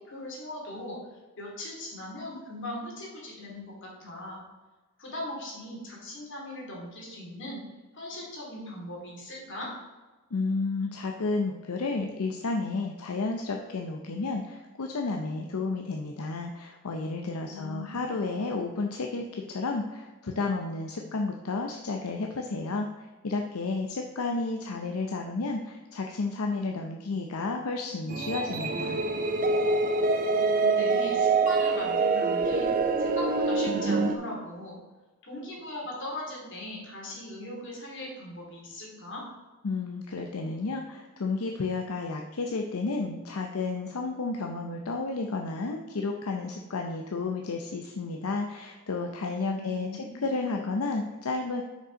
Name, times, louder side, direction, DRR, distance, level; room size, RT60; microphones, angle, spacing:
voice 1, 0.1-1.0 1.4-4.4 5.0-7.6 7.9-9.7 17.5-18.2 30.3-32.7 33.0-34.8 35.2-39.2 49.5-50.2, left 1 dB, 60° left, -3 dB, 2.6 m, -39 dB
voice 2, 10.3-29.0 39.6-51.6, left 3 dB, 80° left, 2 dB, 0.6 m, -32 dB
sound 1, 28.1-34.2, right 3 dB, 40° right, 0.6 m, -25 dB
6.2 x 5.4 x 5.1 m, 1.2 s
head